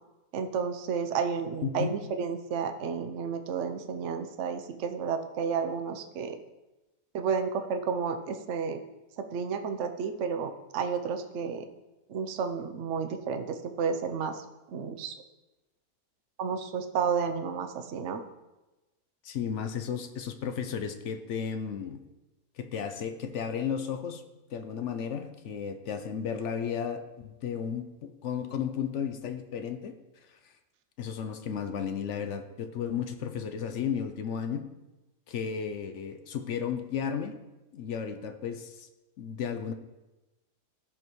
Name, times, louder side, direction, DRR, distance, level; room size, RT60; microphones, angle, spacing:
voice 1, 0.3-6.4 7.1-8.8 9.2-11.6 12.1-14.4 14.7-15.1 16.4-18.2, right 6 dB, 55° right, 7 dB, 0.9 m, -31 dB
voice 2, 1.6-2.0 19.2-22.0 22.6-24.2 24.5-29.9 31.0-34.6 35.3-37.3 37.7-38.9 39.2-39.7, left 7 dB, 60° left, 8 dB, 0.8 m, -34 dB
15.0 x 5.4 x 3.1 m, 1.1 s
omnidirectional pair, 1.7 m